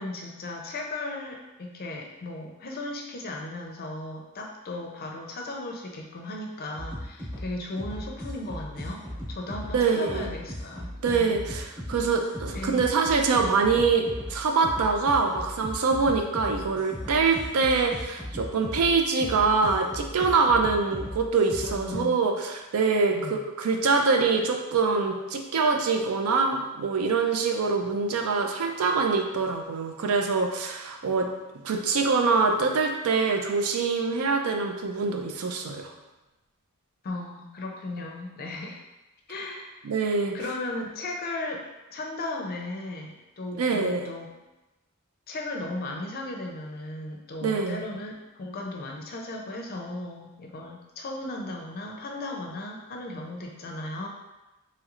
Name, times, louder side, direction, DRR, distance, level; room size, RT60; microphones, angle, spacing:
voice 1, 0.0-9.0 9.3-11.3 12.5-12.8 21.6-22.3 23.1-23.5 37.0-38.8 39.3-39.8 40.3-41.6 41.9-44.3 45.3-54.1, left 2 dB, 45° left, 1 dB, 0.5 m, -36 dB
sound 1, 6.8-22.0, equal, 20° right, 1.0 m, -37 dB
voice 2, 9.7-10.3 11.0-31.3 31.6-35.9 39.8-40.3 43.6-44.1 47.4-47.9, right 4 dB, 80° right, 3 dB, 0.4 m, -24 dB
3.1 x 3.0 x 2.4 m, 1.0 s
head